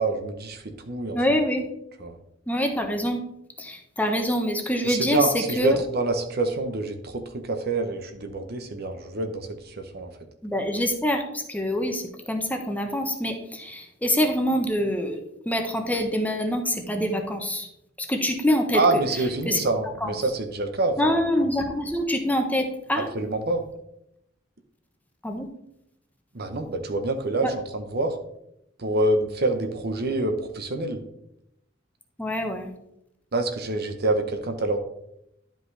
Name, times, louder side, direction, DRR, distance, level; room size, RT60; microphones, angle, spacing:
voice 1, 0.0-1.2 2.0-2.2 4.8-10.1 18.7-21.2 23.0-23.6 26.3-28.2 28.8-31.0 33.3-34.8, right 2 dB, 55° right, 7 dB, 0.8 m, -26 dB
voice 2, 1.1-1.6 2.5-3.2 3.6-5.8 10.4-17.7 18.0-18.8 19.4-19.6 20.0-20.1 21.0-23.1 25.2-25.5 27.4-27.5 32.2-32.7, equal, 10° left, 4 dB, 0.9 m, -25 dB
11.5 x 5.2 x 3.3 m, 0.80 s
head